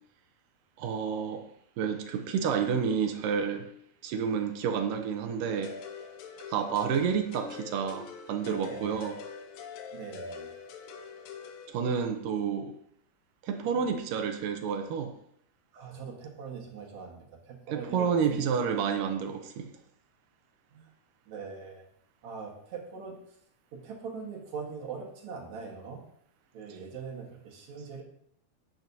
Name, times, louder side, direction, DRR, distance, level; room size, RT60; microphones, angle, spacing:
voice 1, 0.8-1.4 1.8-3.7 4.0-5.8 6.5-9.2 11.7-12.7 13.4-15.1 17.7-19.7, right 6 dB, 75° right, 6 dB, 2.1 m, -30 dB
sound 1, 5.5-11.7, left 5 dB, 75° left, 2.4 m, -44 dB
voice 2, 9.9-10.5 15.7-18.4 18.7-18.8 20.7-20.9 21.3-21.8 22.2-23.2 23.7-26.0 26.5-28.0, right 5 dB, 55° right, 0 dB, 2.3 m, -42 dB
11.5 x 9.3 x 2.8 m, 0.69 s
omnidirectional pair, 4.6 m